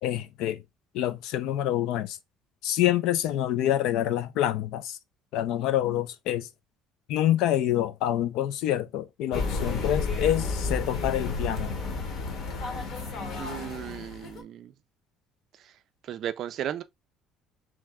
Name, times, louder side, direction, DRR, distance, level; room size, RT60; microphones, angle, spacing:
voice 1, 0.0-0.6 0.9-2.2 2.6-5.0 5.3-6.5 7.1-11.8, left 12 dB, 65° left, 0.4 m, -27 dB
sound 1, 9.3-14.4, left 3 dB, 40° left, 0.9 m, -31 dB
voice 2, 13.4-14.7 15.6-15.7 16.0-16.8, right 10 dB, 40° right, 0.4 m, -35 dB
3.3 x 3.1 x 3.5 m
cardioid pair, 180°, 0 cm